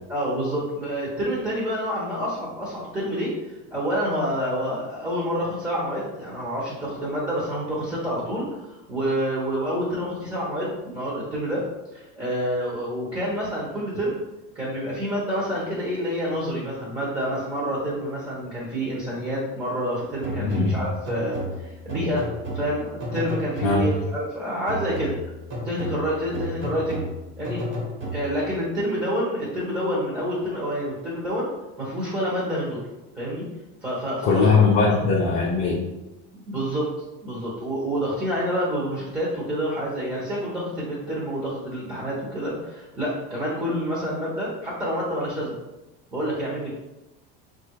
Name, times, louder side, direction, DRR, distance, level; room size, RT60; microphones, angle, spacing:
voice 1, 0.1-3.3 3.7-14.2 14.5-25.1 25.6-27.0 27.4-27.6 28.1-31.5 31.8-32.9 33.2-33.4 33.8-34.5 36.5-36.9 37.2-45.5 46.1-46.7, equal, 10° right, -6 dB, 1.2 m, -28 dB
sound 1, 20.2-24.1 24.7-28.6, equal, 45° right, 1.5 m, -33 dB
voice 2, 20.4-20.7 23.6-23.8 34.2-35.8, left 4 dB, 35° left, -3 dB, 0.7 m, -20 dB
3.6 x 2.5 x 4.6 m, 0.99 s
supercardioid pair, 140°, 32 cm